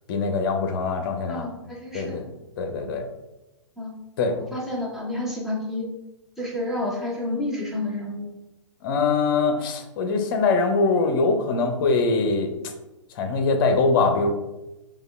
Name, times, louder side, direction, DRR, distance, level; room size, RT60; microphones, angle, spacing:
voice 1, 0.1-1.5 1.9-2.3 2.6-3.0 4.2-4.4 8.8-12.5 13.1-14.3, left 4 dB, 45° left, 5 dB, 0.7 m, -22 dB
voice 2, 1.3-2.3 3.8-4.0 4.5-5.9 6.4-8.3, left 1 dB, ahead, -4 dB, 0.9 m, -30 dB
4.8 x 2.4 x 3.3 m, 0.99 s
figure-of-eight pair, 120°, 16 cm